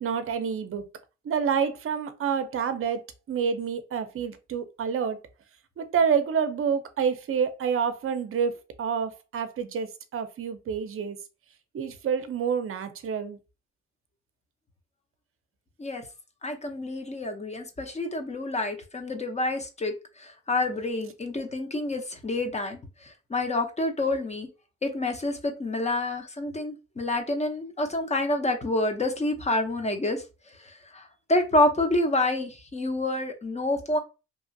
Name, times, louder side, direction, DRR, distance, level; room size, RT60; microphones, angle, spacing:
voice 1, 0.0-0.8 1.2-5.2 5.8-11.2 11.7-13.4, right 6 dB, 45° right, 0.6 m, -28 dB
voice 2, 16.4-24.5 24.8-30.2 30.6-34.0, left 2 dB, 20° left, 0.7 m, -28 dB
2.9 x 2.4 x 2.6 m
cardioid pair, 90°, 30 cm